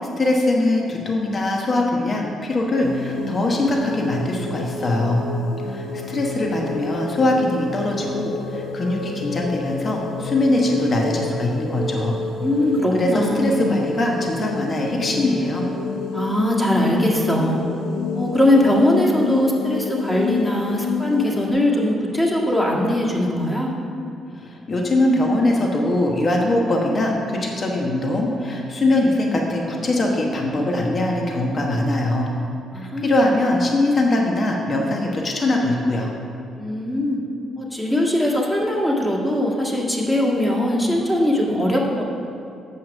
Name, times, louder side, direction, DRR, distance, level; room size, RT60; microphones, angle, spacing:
voice 1, 0.2-5.2 5.6-12.2 12.9-15.7 24.3-32.3 32.7-36.1, left 1 dB, 40° left, 0 dB, 1.1 m, -22 dB
sound 1, 2.8-21.5, left 4 dB, 90° left, 0.7 m, -29 dB
voice 2, 12.4-13.6 16.1-17.6 18.1-23.7 32.7-33.2 36.6-37.2 37.6-42.0, left 1 dB, 10° left, -3 dB, 1.7 m, -20 dB
7.5 x 5.6 x 6.4 m, 2.6 s
cardioid pair, 90°, 0 cm